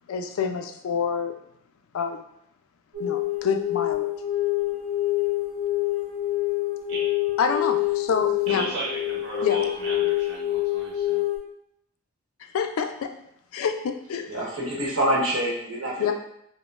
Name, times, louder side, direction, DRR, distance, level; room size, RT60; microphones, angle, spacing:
voice 1, 0.1-1.4 1.9-2.2 3.0-4.1 7.4-8.7 9.4-9.6 12.5-13.1 13.5-14.4 16.0-16.1, left 6 dB, 70° left, 6 dB, 0.3 m, -27 dB
sound 1, 2.9-11.4, left 15 dB, ahead, 1.3 m, -26 dB
voice 2, 8.5-11.2, right 2 dB, 55° right, -6 dB, 1.3 m, -34 dB
voice 3, 14.3-16.1, right 1 dB, 75° right, -4 dB, 1.0 m, -26 dB
5.0 x 2.1 x 2.3 m, 0.75 s
head